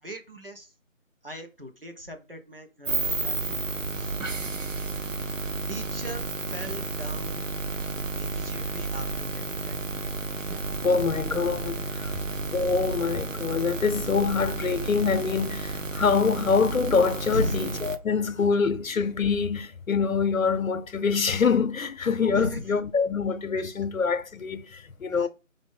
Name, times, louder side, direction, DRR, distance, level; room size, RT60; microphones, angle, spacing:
voice 1, 0.0-0.7 1.2-3.6 3.9-4.2 5.7-6.2 6.5-7.5 8.2-10.0 17.3-17.6 22.3-22.6 25.2-25.3, equal, 45° right, 0.9 m, -38 dB
sound 1, 2.8-18.0, right 3 dB, 70° right, 0.7 m, -32 dB
voice 2, 10.8-12.1 12.5-25.3, left 5 dB, 80° left, 0.7 m, -25 dB
5.3 x 2.6 x 3.5 m
figure-of-eight pair, 180°, 40 cm